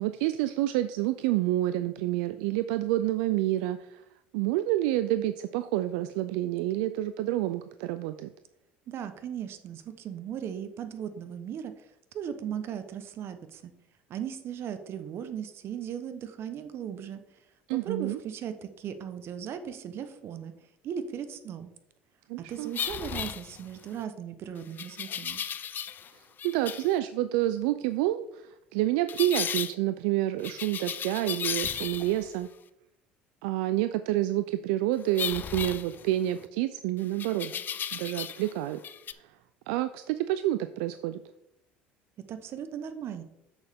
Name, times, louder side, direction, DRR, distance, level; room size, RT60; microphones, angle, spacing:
voice 1, 0.0-4.0 4.3-8.3 17.7-18.2 22.3-22.7 26.1-32.5 33.4-37.5 37.9-38.8 39.2-39.4 39.7-41.2, right 14 dB, 80° right, 11 dB, 0.4 m, -28 dB
voice 2, 8.9-11.8 12.1-13.7 14.1-17.2 17.7-20.5 20.8-21.7 22.5-25.4 42.3-43.2, right 8 dB, 55° right, 10 dB, 1.0 m, -37 dB
sound 1, 22.7-23.9 24.8-26.1 26.4-26.9 29.1-29.7 30.4-32.3 35.1-36.4 37.2-38.5 38.8-39.1, left 8 dB, 40° left, 0.5 m, -35 dB
7.9 x 6.6 x 3.6 m, 0.83 s
hypercardioid pair, 80°, 5 cm